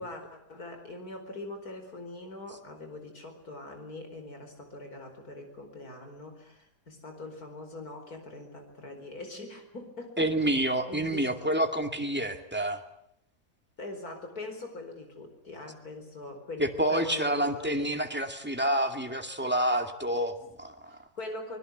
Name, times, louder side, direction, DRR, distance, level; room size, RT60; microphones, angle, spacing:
voice 1, 0.0-10.3 10.9-11.3 13.8-17.9 20.9-21.6, left 2 dB, 65° left, 6 dB, 5.1 m, -42 dB
voice 2, 10.2-12.8 16.6-21.0, right 1 dB, 5° right, 5 dB, 2.2 m, -28 dB
24.5 x 21.5 x 8.1 m, 0.76 s
omnidirectional pair, 1.7 m